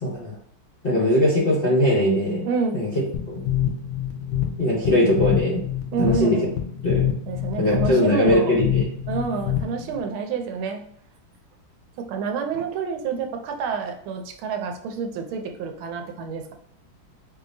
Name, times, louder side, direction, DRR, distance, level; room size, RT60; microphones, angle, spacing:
voice 1, 0.0-0.4 0.8-2.5 2.7-3.4 4.6-5.6 6.0-6.4 6.8-7.1 7.6-8.8, left 1 dB, 40° left, -5 dB, 0.8 m, -21 dB
voice 2, 2.4-2.8 5.9-6.5 7.3-8.5 9.1-10.8 12.0-16.5, right 5 dB, 85° right, 5 dB, 1.5 m, -28 dB
sound 1, 3.1-10.0, left 11 dB, 75° left, 1.3 m, -26 dB
4.7 x 2.8 x 2.6 m, 0.65 s
omnidirectional pair, 2.2 m